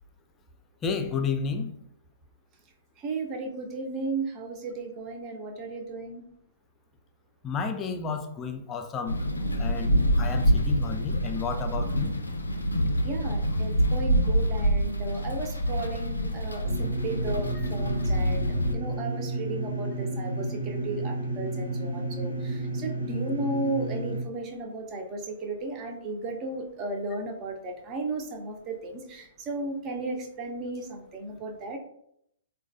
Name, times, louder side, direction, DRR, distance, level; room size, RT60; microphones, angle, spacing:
voice 1, 0.8-1.7 7.4-9.2 9.6-12.1, left 5 dB, 20° left, 6 dB, 0.3 m, -31 dB
voice 2, 3.0-6.2 13.0-31.8, right 2 dB, 30° right, 2 dB, 0.6 m, -35 dB
sound 1, 9.1-18.7, equal, 85° left, 0.4 m, -26 dB
sound 2, 16.6-24.2, right 2 dB, 85° right, 0.7 m, -32 dB
3.8 x 2.2 x 2.6 m, 0.75 s
figure-of-eight pair, 115°, 0 cm